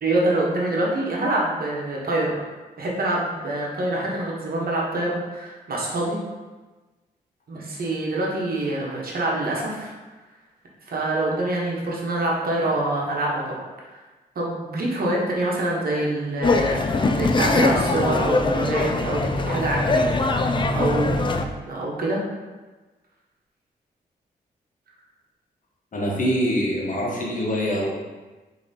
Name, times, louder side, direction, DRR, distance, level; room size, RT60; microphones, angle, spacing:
voice 1, 0.0-2.4 2.8-6.2 7.5-9.9 10.9-14.0 14.3-20.0 20.4-22.2, right 1 dB, 60° right, -3 dB, 1.0 m, -25 dB
sound 1, 16.4-21.4, left 3 dB, 30° left, 0.3 m, -22 dB
voice 2, 25.9-27.9, equal, 50° left, -3 dB, 1.1 m, -24 dB
4.8 x 2.9 x 2.8 m, 1.2 s
cardioid pair, 55°, 17 cm